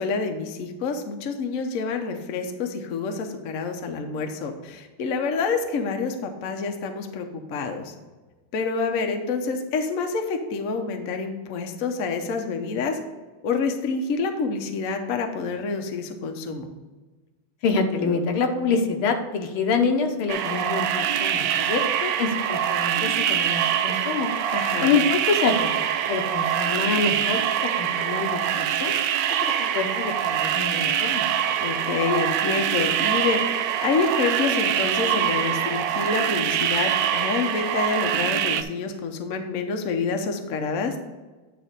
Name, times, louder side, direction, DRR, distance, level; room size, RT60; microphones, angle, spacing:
voice 1, 0.0-7.9 8.5-13.0 13.4-16.7 24.5-24.9 31.6-33.4 33.8-41.0, left 4 dB, 55° left, 5 dB, 0.9 m, -27 dB
voice 2, 17.6-24.3 24.8-27.4 27.8-28.9 29.4-31.3, left 4 dB, 75° left, 5 dB, 1.7 m, -26 dB
sound 1, 20.3-38.6, right 10 dB, 75° right, 1.0 m, -24 dB
9.2 x 3.4 x 6.6 m, 1.3 s
omnidirectional pair, 2.4 m